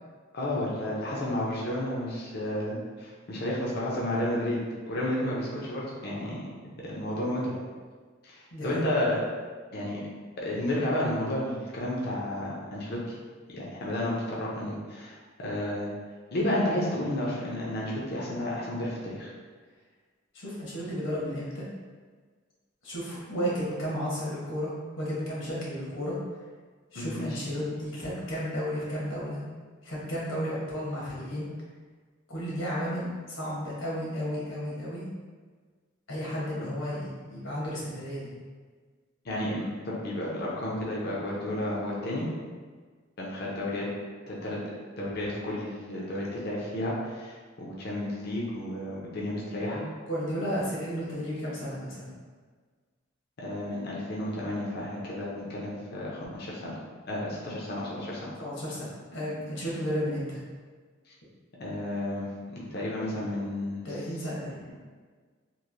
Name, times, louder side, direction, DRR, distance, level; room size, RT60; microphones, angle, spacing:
voice 1, 0.3-4.6 4.9-6.4 6.8-7.5 8.2-9.2 9.7-10.0 10.4-13.2 13.5-15.9 16.3-19.3 26.9-27.5 39.2-42.3 43.2-43.9 44.3-44.6 45.0-49.8 53.4-56.7 57.1-58.3 61.6-62.3 62.5-63.8, left 1 dB, 55° left, -5 dB, 0.6 m, -32 dB
voice 2, 8.5-8.8 20.3-21.7 22.8-26.2 26.9-29.4 29.8-31.5 32.3-35.1 36.1-38.3 50.0-52.1 58.4-60.4 63.8-64.6, equal, 80° left, -6 dB, 1.1 m, -33 dB
3.1 x 2.5 x 2.6 m, 1.5 s
head